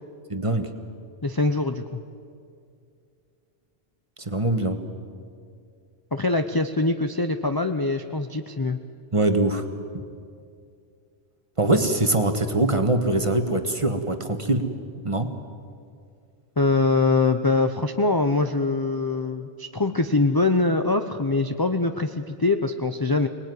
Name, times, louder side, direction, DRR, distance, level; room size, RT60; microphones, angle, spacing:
voice 1, 0.3-0.7 4.2-4.8 9.1-9.6 11.6-14.7 15.0-15.3, right 2 dB, 25° right, 6 dB, 1.6 m, -23 dB
voice 2, 1.2-2.0 6.1-8.8 16.6-23.3, left 3 dB, 20° left, 6 dB, 0.7 m, -23 dB
25.5 x 19.5 x 9.5 m, 2.3 s
omnidirectional pair, 1.2 m